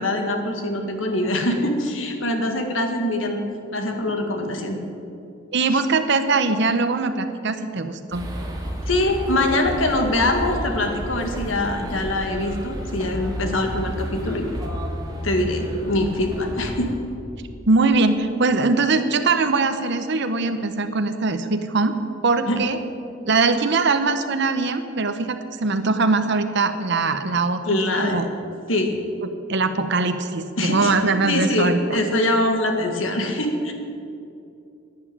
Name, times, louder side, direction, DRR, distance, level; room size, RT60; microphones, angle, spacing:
voice 1, 0.0-3.5 3.7-4.8 5.7-5.8 8.9-14.5 15.2-16.9 22.5-22.6 27.6-28.2 28.7-29.0 30.6-30.9 31.3-33.7, left 1 dB, 85° left, 4 dB, 1.9 m, -23 dB
voice 2, 5.5-8.3 17.7-22.0 22.2-22.8 23.2-27.6 28.0-28.3 29.5-31.8, right 3 dB, 60° right, 8 dB, 0.9 m, -21 dB
sound 1, 8.1-17.0, equal, 20° right, 2.2 m, -31 dB
11.5 x 9.5 x 9.9 m, 2.7 s
head